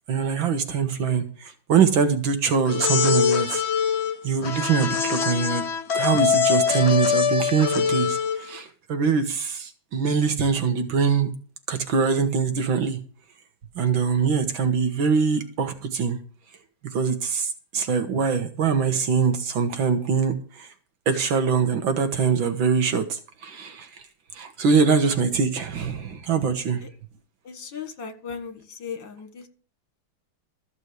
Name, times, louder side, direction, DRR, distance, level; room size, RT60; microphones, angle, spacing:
voice 1, 0.1-3.6 4.2-5.6 5.9-11.3 11.7-13.0 13.8-16.2 16.9-20.7 21.1-24.0 24.3-26.8, right 5 dB, 70° right, 8 dB, 1.9 m, -23 dB
sound 1, 2.6-8.5, left 7 dB, 45° left, 0.9 m, -23 dB
voice 2, 27.4-29.5, left 6 dB, 65° left, 9 dB, 2.4 m, -37 dB
13.5 x 6.2 x 8.0 m, 0.39 s
omnidirectional pair, 2.2 m